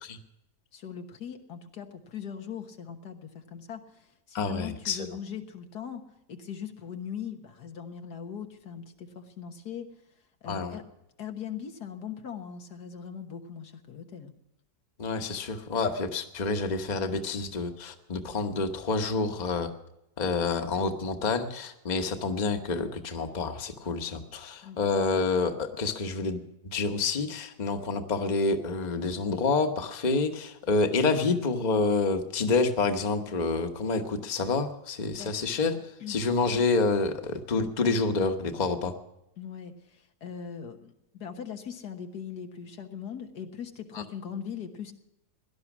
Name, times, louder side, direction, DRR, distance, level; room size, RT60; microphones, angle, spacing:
voice 1, 0.7-6.0 6.3-9.9 10.4-10.8 11.2-14.3 24.6-24.8 35.1-35.3 36.0-36.2 39.4-44.9, left 8 dB, 90° left, 5 dB, 1.9 m, -40 dB
voice 2, 4.3-5.1 10.5-10.8 15.0-19.7 20.2-35.8 36.1-38.9 43.9-44.0, left 4 dB, 30° left, 6 dB, 1.1 m, -28 dB
17.5 x 11.5 x 6.1 m, 0.87 s
omnidirectional pair, 1.7 m